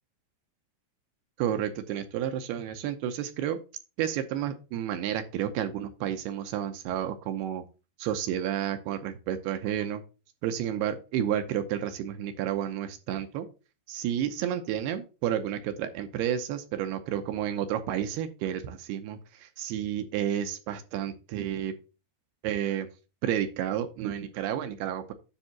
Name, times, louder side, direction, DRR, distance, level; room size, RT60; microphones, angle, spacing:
voice 1, 1.4-3.6 4.0-7.6 8.0-10.0 10.4-13.5 13.9-21.7 22.4-22.9 23.2-25.1, right 10 dB, 75° right, 8 dB, 2.6 m, -31 dB
10.0 x 3.5 x 5.8 m, 0.32 s
omnidirectional pair, 5.1 m